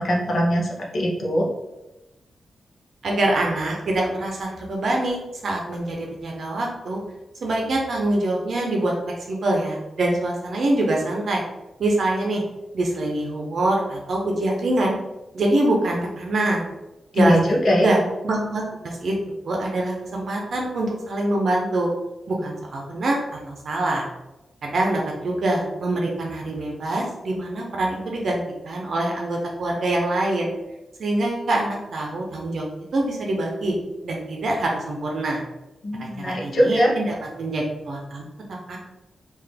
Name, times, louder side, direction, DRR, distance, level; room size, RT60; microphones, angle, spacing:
voice 1, 0.0-1.5 17.1-17.9 35.8-36.9, equal, 45° left, -2 dB, 0.8 m, -21 dB
voice 2, 3.0-7.0 7.4-8.9 9.3-11.4 11.8-12.4 12.7-15.0 15.3-16.7 17.1-19.1 19.4-21.9 22.3-23.2 23.5-24.1 24.6-30.5 31.0-32.7 32.9-33.7 34.0-35.4 36.2-38.2 38.7-38.8, right 1 dB, 55° right, 0 dB, 0.7 m, -24 dB
3.9 x 2.5 x 3.4 m, 0.98 s
wide cardioid pair, 160°, 0 cm